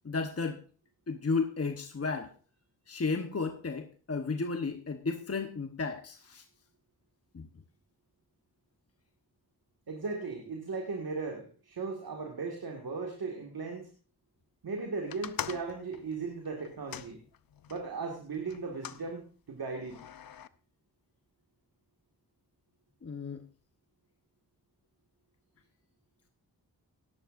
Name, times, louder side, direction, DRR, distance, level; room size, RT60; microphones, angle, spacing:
voice 1, 0.0-0.6 1.1-2.3 2.9-6.4 7.3-7.5 23.0-23.4, left 4 dB, 40° left, 6 dB, 1.1 m, -33 dB
voice 2, 9.9-13.9 14.6-17.2 17.7-20.0, right 4 dB, 70° right, 2 dB, 2.0 m, -37 dB
sound 1, 15.1-17.9 18.5-19.0 19.8-20.5, left 9 dB, 65° left, 0.7 m, -43 dB
17.0 x 11.5 x 2.6 m, 0.37 s
cardioid pair, 50°, 38 cm